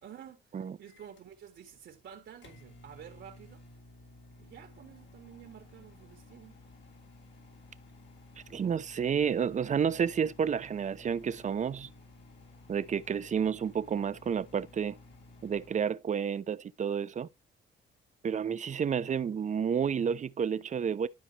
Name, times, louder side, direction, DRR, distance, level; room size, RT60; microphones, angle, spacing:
voice 1, 0.0-3.6 4.4-6.6, right 9 dB, 70° right, 2.0 m, -51 dB
Microwave oven, 0.9-15.9, left 2 dB, 65° left, 2.7 m, -55 dB
voice 2, 8.5-11.9 12.7-15.0 15.4-17.3 18.2-21.1, right 7 dB, 40° right, 0.6 m, -30 dB
12.5 x 4.8 x 3.0 m
cardioid pair, 90°, 20 cm